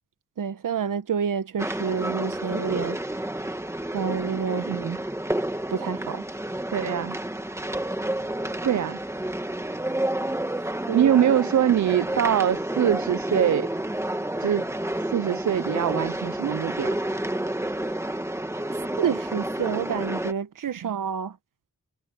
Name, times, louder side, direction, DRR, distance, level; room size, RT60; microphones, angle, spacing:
voice 1, 0.4-3.0 3.9-4.7 5.7-6.2 10.9-11.1 19.0-21.4, right 7 dB, 90° right, 1.2 m, -28 dB
sound 1, 1.6-20.3, right 1 dB, 10° right, 1.6 m, -30 dB
voice 2, 4.6-5.0 6.7-7.2 8.6-9.0 10.9-13.7 14.4-14.7 15.0-17.0 20.8-20.9, right 10 dB, 65° right, 0.6 m, -23 dB
wide cardioid pair, 125°, 32 cm